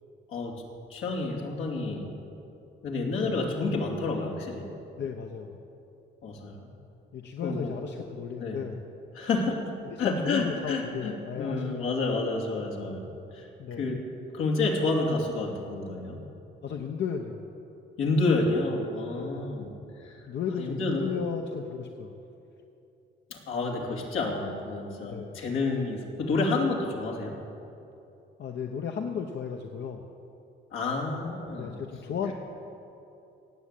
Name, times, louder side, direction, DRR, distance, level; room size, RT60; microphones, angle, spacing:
voice 1, 0.9-2.1 2.8-4.7 6.2-6.7 7.4-7.7 8.4-8.6 9.1-13.1 13.3-13.5 13.8-14.0 14.3-16.2 18.0-19.7 20.0-20.2 20.6-21.1 23.3-27.3 30.7-31.8, left 3 dB, 85° left, -1 dB, 2.6 m, -29 dB
voice 2, 5.0-5.6 7.1-8.8 9.8-11.9 13.6-13.9 16.6-17.5 19.2-19.4 20.3-22.2 25.1-25.4 28.4-30.1 31.6-32.3, left 7 dB, 60° left, 3 dB, 1.0 m, -35 dB
18.0 x 7.4 x 8.3 m, 2.8 s
cardioid pair, 90°, 20 cm